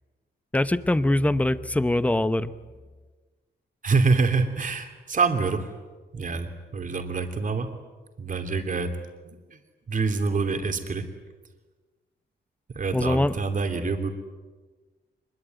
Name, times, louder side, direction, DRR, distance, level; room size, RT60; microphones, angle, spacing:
voice 1, 0.5-2.5 12.9-13.3, left 1 dB, 10° left, 14 dB, 0.8 m, -23 dB
voice 2, 3.8-5.7 6.1-7.7 8.2-9.0 9.2-9.6 9.9-11.0 12.7-14.1, right 4 dB, 45° right, 6 dB, 3.0 m, -26 dB
25.0 x 22.0 x 9.3 m, 1.3 s
wide cardioid pair, 130°, 19 cm